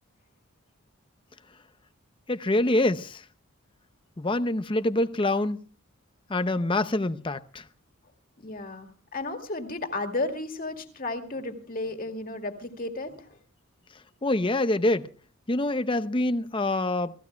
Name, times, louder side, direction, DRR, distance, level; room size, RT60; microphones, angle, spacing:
voice 1, 2.3-3.2 4.2-5.6 6.3-7.6 14.2-15.1 15.5-17.1, left 2 dB, 25° left, 0.6 m, -25 dB
voice 2, 8.4-13.4, left 2 dB, 40° left, 2.3 m, -33 dB
28.5 x 17.0 x 2.3 m
head